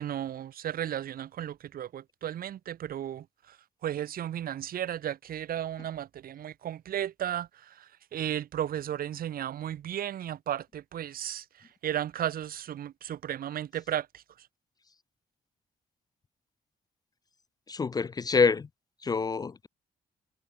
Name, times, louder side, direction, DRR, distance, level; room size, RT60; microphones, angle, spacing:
voice 1, 0.0-3.6 3.8-14.5, right 11 dB, 80° right, 6.0 m, -34 dB
voice 2, 17.7-18.7 19.0-19.7, left 5 dB, 25° left, 0.4 m, -26 dB
cardioid pair, 130°, 15 cm